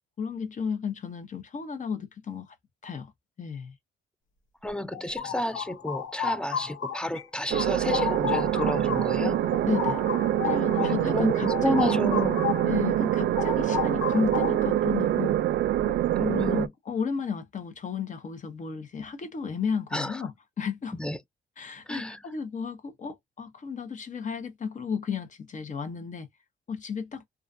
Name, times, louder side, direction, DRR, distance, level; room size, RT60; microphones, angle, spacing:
voice 1, 0.2-2.6 2.8-3.1 3.4-3.7 9.1-9.3 9.6-10.0 10.4-11.3 11.6-12.0 12.6-15.4 15.9-16.0 16.4-21.0 21.6-26.3 26.7-27.2, left 6 dB, 40° left, 0.8 m, -33 dB
voice 2, 4.6-9.4 10.8-12.5 16.1-16.7 19.9-20.3 20.9-21.2 21.9-22.2, left 1 dB, 5° left, 0.4 m, -31 dB
sound 1, 4.7-7.2 7.5-12.8 13.1-14.8, left 9 dB, 75° left, 0.8 m, -33 dB
sound 2, 7.5-16.7, right 12 dB, 60° right, 0.4 m, -25 dB
2.3 x 2.3 x 2.6 m
cardioid pair, 90°, 20 cm